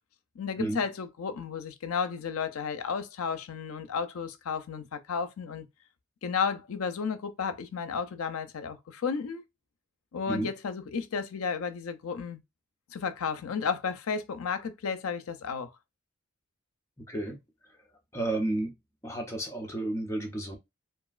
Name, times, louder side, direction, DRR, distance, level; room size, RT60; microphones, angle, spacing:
voice 1, 0.4-5.7 6.2-9.4 10.1-12.4 12.9-15.7, left 6 dB, 80° left, 0.5 m, -33 dB
voice 2, 17.1-17.4 18.1-18.7 19.0-20.6, right 1 dB, 15° left, 0.6 m, -31 dB
2.9 x 2.4 x 2.4 m
head